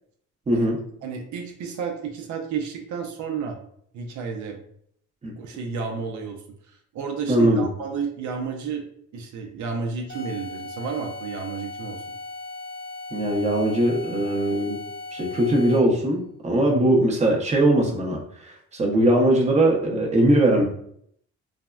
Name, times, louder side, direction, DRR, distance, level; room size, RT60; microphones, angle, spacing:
voice 1, 0.5-0.8 5.2-5.3 7.3-7.6 13.1-14.8 15.1-20.6, right 1 dB, 25° right, 0 dB, 0.7 m, -20 dB
voice 2, 1.0-3.6 3.9-4.6 5.4-8.9 9.1-12.0 16.7-17.0, right 5 dB, 75° right, 2 dB, 0.5 m, -32 dB
sound 1, 10.1-16.0, left 2 dB, 50° left, 0.8 m, -37 dB
3.3 x 2.0 x 2.3 m, 0.67 s
cardioid pair, 90°, 30 cm